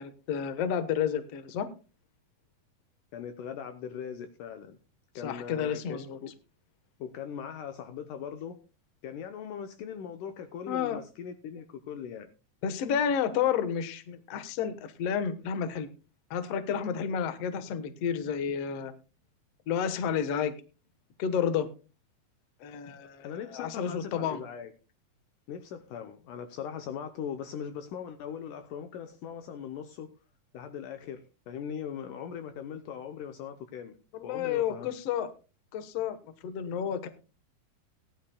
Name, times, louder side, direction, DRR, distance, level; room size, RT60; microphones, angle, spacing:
voice 1, 0.0-1.7 5.2-6.2 10.7-11.0 12.6-15.9 16.3-18.9 19.7-20.5 21.2-21.7 22.6-24.4 34.1-35.3 35.7-36.2 36.4-37.1, left 8 dB, 60° left, 1.9 m, -31 dB
voice 2, 3.1-4.8 5.2-6.3 7.0-8.6 9.0-12.3 23.2-24.7 25.5-30.1 30.5-33.9 34.2-34.9, left 8 dB, 75° left, 2.2 m, -40 dB
18.0 x 11.5 x 2.3 m
omnidirectional pair, 4.2 m